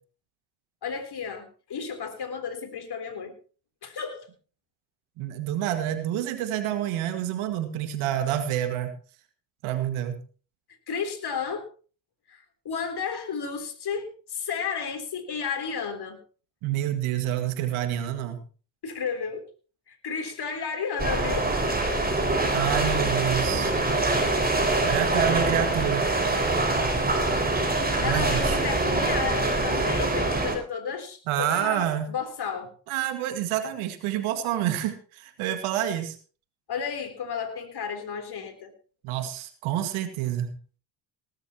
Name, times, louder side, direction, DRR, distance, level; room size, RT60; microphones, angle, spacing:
voice 1, 0.8-3.3 3.8-4.3 10.9-11.7 12.3-16.2 18.8-19.4 19.9-21.5 28.0-32.7 36.7-38.7, left 6 dB, 50° left, 5 dB, 3.8 m, -33 dB
voice 2, 5.2-8.9 9.6-10.2 16.6-18.4 22.5-23.8 24.8-26.1 28.0-28.6 31.3-32.1 32.9-36.2 39.0-40.5, right 11 dB, 70° right, 8 dB, 2.1 m, -28 dB
sound 1, 21.0-30.6, right 2 dB, 20° right, 5.5 m, -24 dB
18.5 x 13.0 x 3.0 m, 0.37 s
hypercardioid pair, 60°, 50 cm